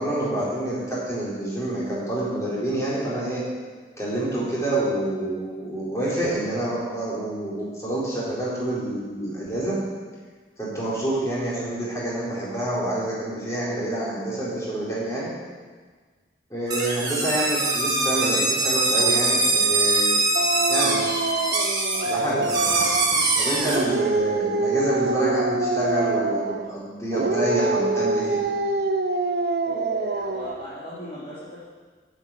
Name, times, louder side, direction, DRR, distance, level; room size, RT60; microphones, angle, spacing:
voice 1, 0.0-3.4 4.0-9.8 10.6-15.3 16.5-20.2 20.7-21.1 22.0-22.5 23.4-28.4, right 1 dB, 20° left, -8 dB, 4.1 m, -27 dB
sound 1, 16.7-23.8, right 3 dB, 20° right, 1.9 m, -23 dB
Dog, 20.4-23.2 23.6-26.7 27.1-30.7, right 3 dB, 65° right, 0.8 m, -25 dB
voice 2, 29.6-31.6, equal, 40° left, -12 dB, 3.1 m, -37 dB
9.3 x 8.3 x 9.3 m, 1.5 s
head